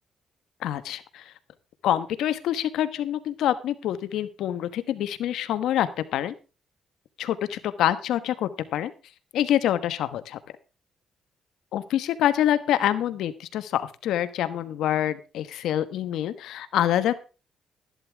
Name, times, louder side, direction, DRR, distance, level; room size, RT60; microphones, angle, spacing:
voice 1, 0.6-1.3 1.8-6.3 7.2-8.9 9.3-10.4 11.7-17.2, left 11 dB, 80° left, 13 dB, 1.2 m, -26 dB
13.0 x 11.5 x 3.5 m, 0.33 s
cardioid pair, 90°, 0 cm